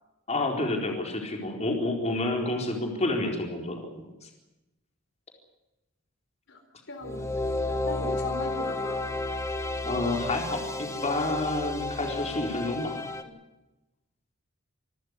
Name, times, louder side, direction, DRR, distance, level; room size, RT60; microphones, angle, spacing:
voice 1, 0.3-4.3 9.8-13.0, left 2 dB, 35° left, 2 dB, 4.3 m, -29 dB
voice 2, 6.9-7.2 7.7-9.0 13.2-13.4, left 2 dB, 65° left, 5 dB, 3.9 m, -38 dB
sound 1, 7.0-13.2, left 2 dB, 15° left, 1.7 m, -32 dB
26.5 x 14.0 x 9.7 m, 0.98 s
head